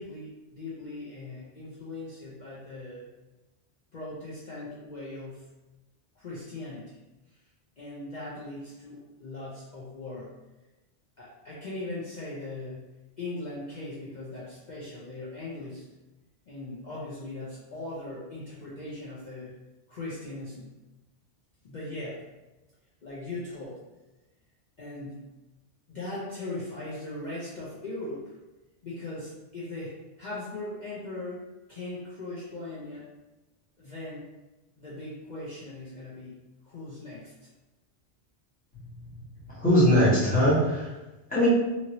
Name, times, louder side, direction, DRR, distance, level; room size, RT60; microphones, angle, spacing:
voice 1, 0.0-3.1 3.9-5.5 6.2-6.9 7.8-10.3 11.2-12.9 13.2-15.8 16.5-19.5 19.9-20.8 21.6-22.2 23.0-23.8 24.8-25.3 25.9-28.3 28.8-31.4 31.7-33.1 33.8-34.3 34.8-36.3 36.6-37.3, left 2 dB, 45° left, -8 dB, 0.6 m, -39 dB
voice 2, 39.1-40.9 41.3-41.5, equal, 5° left, -11 dB, 1.3 m, -22 dB
2.9 x 2.8 x 2.8 m, 1.1 s
omnidirectional pair, 1.2 m